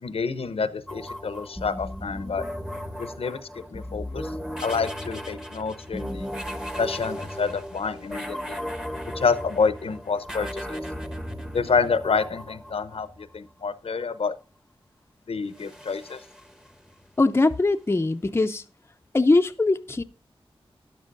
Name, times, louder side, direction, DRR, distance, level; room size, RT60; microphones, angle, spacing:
voice 1, 0.0-2.4 3.0-4.3 4.6-6.3 6.8-8.6 9.1-10.8 11.5-14.3 15.3-16.2, left 5 dB, 75° left, 0.8 m, -28 dB
sound 1, 0.9-13.4 15.5-17.1, equal, 5° right, 1.1 m, -36 dB
voice 2, 17.2-18.6 19.1-20.0, left 2 dB, 25° left, 0.6 m, -21 dB
13.0 x 10.5 x 2.6 m
wide cardioid pair, 85°, 10 cm